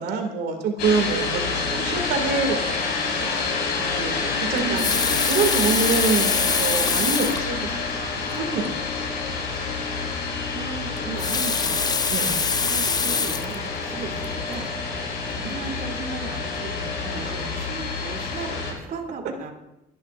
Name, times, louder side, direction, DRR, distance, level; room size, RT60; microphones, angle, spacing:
voice 1, 0.0-3.3 3.9-7.6 8.1-8.9 12.1-12.3 17.2-17.3, right 4 dB, 75° right, 4 dB, 2.2 m, -26 dB
sound 1, 0.8-18.7, left 4 dB, 75° left, 4.4 m, -28 dB
voice 2, 4.5-5.0 10.5-12.0 12.6-14.7 15.3-19.5, right 4 dB, 55° right, 2 dB, 2.9 m, -36 dB
Water tap faucet, 4.6-7.5 8.3-8.4 8.7-8.8 11.0-13.6 14.2-14.4, left 5 dB, 25° left, 0.6 m, -24 dB
28.0 x 11.0 x 2.5 m, 0.91 s
cardioid pair, 110°, 17 cm